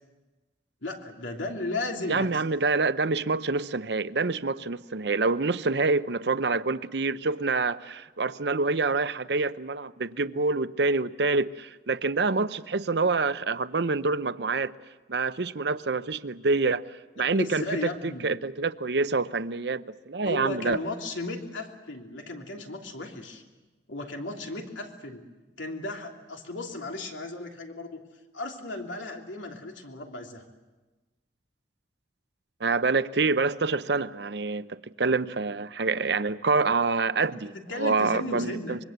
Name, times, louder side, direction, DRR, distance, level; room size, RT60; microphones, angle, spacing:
voice 1, 0.8-2.4 17.2-18.3 20.2-23.4 23.9-25.3 25.6-28.0 28.3-30.4 37.3-38.9, left 2 dB, 85° left, 3.2 m, -35 dB
voice 2, 2.1-14.7 15.1-17.6 18.0-20.8 32.6-38.8, right 3 dB, 60° right, 0.7 m, -27 dB
25.0 x 23.0 x 8.1 m
head